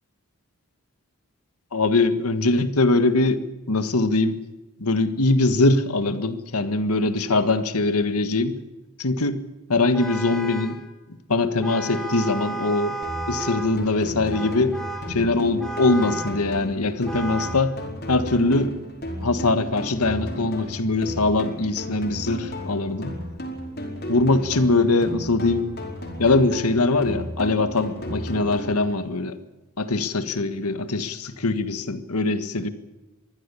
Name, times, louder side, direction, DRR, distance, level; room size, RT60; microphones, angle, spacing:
voice 1, 1.7-3.4 3.7-4.4 4.8-8.5 9.0-9.4 9.7-10.8 11.3-13.0 13.3-14.8 15.1-17.7 18.1-18.7 19.2-23.1 24.1-25.6 26.2-29.4 29.8-32.7, left 2 dB, 90° left, 10 dB, 1.7 m, -22 dB
Vehicle horn car horn honking, 9.9-10.8 11.6-13.8 14.3-15.2 15.6-16.4 17.1-17.7, right 2 dB, ahead, 3.2 m, -33 dB
sound 1, 13.0-29.0, equal, 45° left, 5.1 m, -34 dB
23.0 x 15.5 x 8.5 m, 1.1 s
head